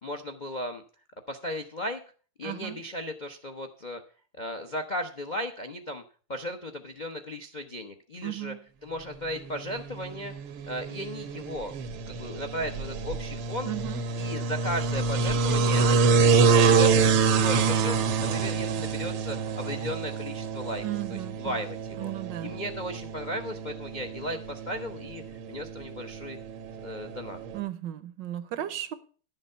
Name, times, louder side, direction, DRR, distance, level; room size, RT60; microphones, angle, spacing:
voice 1, 0.0-0.8 1.3-2.0 2.4-4.0 4.4-6.0 6.3-8.5 8.8-10.3 10.7-11.7 12.1-13.7 14.2-16.3 16.7-20.8 21.1-22.1 22.4-25.2 25.5-26.4 26.8-27.4, equal, 70° left, 0.4 m, -36 dB
voice 2, 2.4-2.8 8.2-8.6 13.6-14.0 20.8-21.6 22.0-22.5 27.5-28.9, right 13 dB, 70° right, 1.2 m, -35 dB
sound 1, 9.5-27.6, right 4 dB, 85° right, 1.9 m, -27 dB
11.0 x 7.2 x 5.4 m
omnidirectional pair, 2.4 m